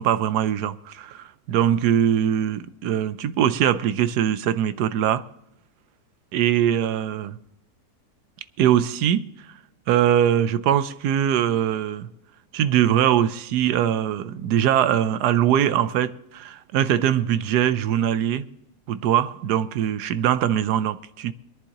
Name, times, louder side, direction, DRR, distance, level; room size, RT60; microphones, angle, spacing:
voice 1, 0.0-5.2 6.3-7.4 8.6-9.3 9.9-12.1 12.5-18.5 18.9-21.3, right 10 dB, 85° right, 1.2 m, -22 dB
23.0 x 11.0 x 2.9 m
omnidirectional pair, 1.7 m